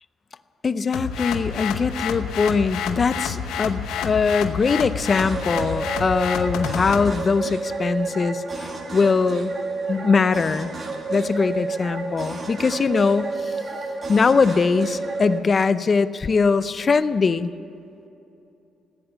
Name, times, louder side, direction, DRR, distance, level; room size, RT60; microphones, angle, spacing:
voice 1, 0.6-9.5 9.9-10.7 11.1-13.6 14.1-17.5, left 4 dB, 40° left, 14 dB, 0.6 m, -21 dB
sound 1, 0.9-7.1, left 8 dB, 85° left, 0.9 m, -29 dB
sound 2, 5.1-15.4, right 3 dB, 40° right, 2.1 m, -30 dB
15.0 x 10.0 x 8.0 m, 2.8 s
cardioid pair, 90°, 0 cm